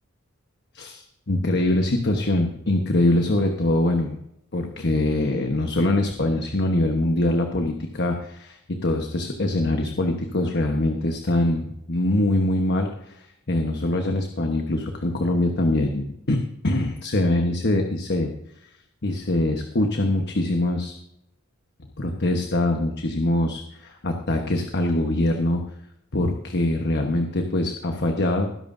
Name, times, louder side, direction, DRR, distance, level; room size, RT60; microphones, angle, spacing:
voice 1, 0.7-4.2 4.5-18.3 18.6-18.7 19.0-20.9 22.0-25.6 26.1-28.5, left 1 dB, 55° left, 4 dB, 1.2 m, -23 dB
19.5 x 11.0 x 2.7 m, 0.77 s
head